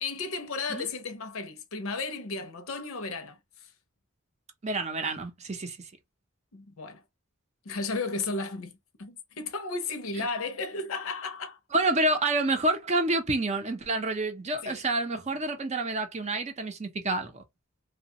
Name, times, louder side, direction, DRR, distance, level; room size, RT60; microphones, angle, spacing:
voice 1, 0.0-3.4 6.5-7.0 7.7-11.6 14.6-14.8, left 3 dB, 70° left, 0.7 m, -34 dB
voice 2, 4.6-5.8 10.2-10.3 11.7-17.4, right 2 dB, 30° right, 0.6 m, -28 dB
3.0 x 2.2 x 2.7 m
head